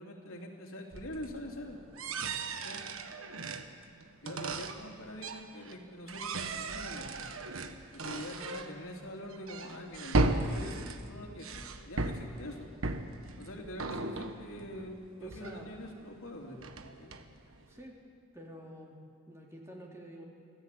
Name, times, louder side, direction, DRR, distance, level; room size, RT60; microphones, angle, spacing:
voice 1, 0.0-1.8 2.6-2.8 4.2-7.4 7.9-12.7 13.4-17.1, left 1 dB, 85° left, 0 dB, 3.1 m, -44 dB
sound 1, 0.9-5.8 6.1-16.2 16.5-17.8, right 2 dB, 85° right, 1.3 m, -36 dB
voice 2, 14.0-14.3 15.2-15.8 17.7-18.0 18.3-19.0 19.3-20.2, equal, 15° right, -2 dB, 3.0 m, -48 dB
25.5 x 15.0 x 8.5 m, 2.3 s
head